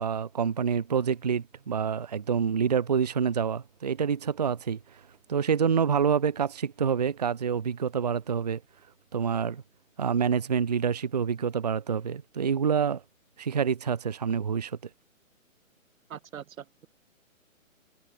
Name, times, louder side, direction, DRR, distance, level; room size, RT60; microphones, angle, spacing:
voice 1, 0.0-5.0 5.3-8.6 9.1-9.6 10.0-13.0 13.4-14.8, right 7 dB, 30° right, 0.6 m, -27 dB
voice 2, 16.1-16.9, right 9 dB, 75° right, 0.7 m, -42 dB
hypercardioid pair, 165°, 41 cm